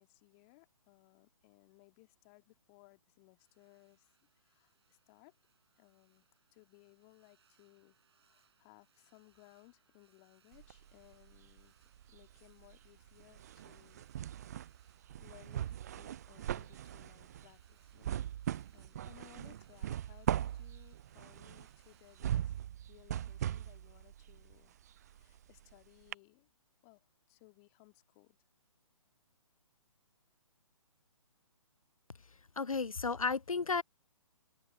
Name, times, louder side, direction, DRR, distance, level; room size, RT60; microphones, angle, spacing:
voice 1, 0.0-4.1 4.4-5.4 5.8-14.1 14.4-14.7 15.2-18.2 18.7-22.6 22.9-24.7 25.1-26.5 26.8-28.4, left 30 dB, 25° left, 2.2 m, -63 dB
sound 1, 3.4-22.6, right 8 dB, 50° right, 5.0 m, -74 dB
sound 2, 10.5-11.7 12.0-25.7 26.1-26.2, right 11 dB, 30° right, 0.4 m, -40 dB
voice 2, 32.6-33.8, left 4 dB, 90° left, 0.4 m, -33 dB
open air
figure-of-eight pair, 130°, 17 cm